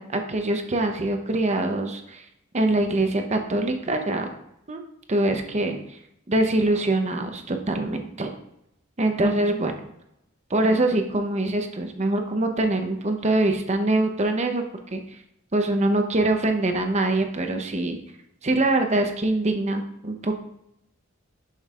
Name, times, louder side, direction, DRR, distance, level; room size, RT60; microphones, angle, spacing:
voice 1, 0.0-2.2 2.5-4.3 4.7-4.8 5.1-6.0 6.3-8.3 9.0-9.7 10.5-14.6 14.9-15.0 15.5-18.0 18.4-20.3, right 2 dB, 35° right, 5 dB, 0.8 m, -24 dB
11.0 x 5.3 x 2.5 m, 0.79 s
head